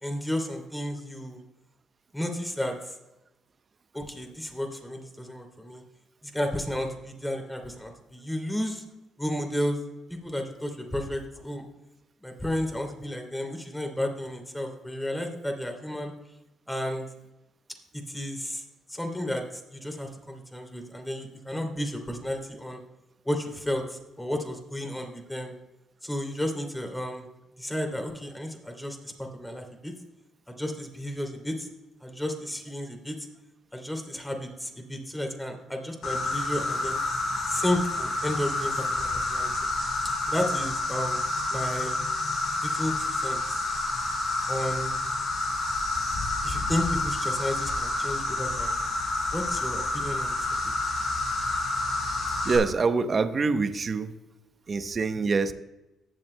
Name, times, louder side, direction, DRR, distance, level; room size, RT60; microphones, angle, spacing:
voice 1, 0.0-1.4 2.1-3.0 3.9-5.8 6.2-8.8 9.2-9.8 10.1-11.6 12.2-16.1 16.7-17.1 17.9-18.6 18.9-22.8 23.2-25.5 26.0-27.2 27.6-29.9 30.5-31.7 32.0-33.2 33.7-37.0 37.5-39.5 40.3-41.2 41.5-42.0 42.6-43.7 44.5-44.9 46.4-48.8 49.3-50.5, left 1 dB, 10° left, 3 dB, 2.7 m, -32 dB
Insect, 36.0-52.6, left 2 dB, 65° left, 3.9 m, -29 dB
voice 2, 52.4-54.1 54.7-55.5, right 4 dB, 45° right, 10 dB, 0.8 m, -25 dB
19.0 x 7.4 x 2.2 m, 0.98 s
supercardioid pair, 60°, 0 cm